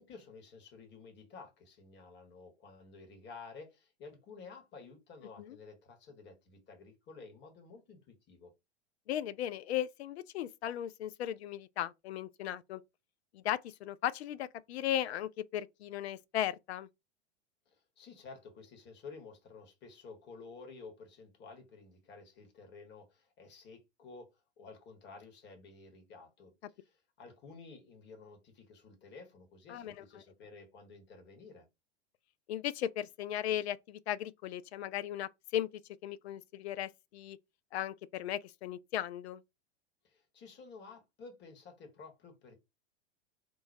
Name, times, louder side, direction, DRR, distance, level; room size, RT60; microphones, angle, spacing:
voice 1, 0.0-8.5 17.7-26.5 26.8-31.7 40.0-42.6, left 4 dB, 30° left, 1.5 m, -52 dB
voice 2, 9.1-12.8 13.3-16.9 29.7-30.2 32.5-35.7 36.0-37.4 37.7-39.4, left 11 dB, 70° left, 0.5 m, -37 dB
2.9 x 2.2 x 4.1 m
hypercardioid pair, 95°, 34 cm